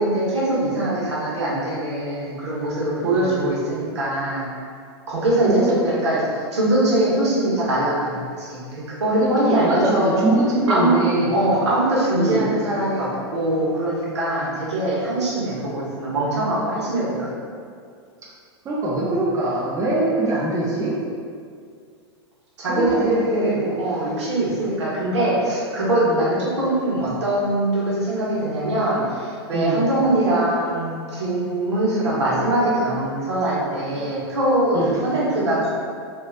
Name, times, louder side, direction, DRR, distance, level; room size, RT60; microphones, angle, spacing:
voice 1, 0.0-4.4 5.1-6.2 6.5-10.3 10.7-11.0 11.3-17.3 22.6-35.7, right 1 dB, 80° right, -6 dB, 1.0 m, -22 dB
voice 2, 3.0-3.5 5.5-5.8 9.1-11.4 12.1-12.5 14.4-14.6 18.6-20.9 22.7-24.2 26.0-26.3 29.5-29.9 33.7-34.0 34.7-35.0, right 2 dB, 25° right, -5 dB, 0.5 m, -23 dB
3.1 x 2.4 x 2.5 m, 2.2 s
hypercardioid pair, 115°, 14 cm